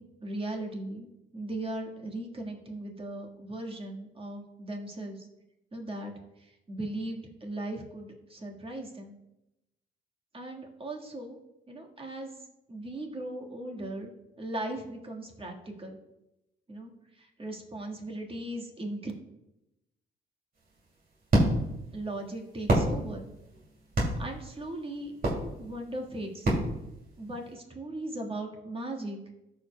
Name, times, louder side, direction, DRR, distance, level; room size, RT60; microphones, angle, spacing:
voice 1, 0.0-5.3 5.7-6.1 6.4-9.1 10.3-11.4 11.7-12.3 12.7-14.1 14.4-15.9 16.7-19.1 21.9-23.3 24.2-26.5 27.2-29.2, right 1 dB, 25° right, 1 dB, 1.5 m, -38 dB
sound 1, 20.6-27.5, right 1 dB, 45° right, 2.5 m, -30 dB
14.5 x 5.1 x 2.2 m, 0.92 s
cardioid pair, 90°, 20 cm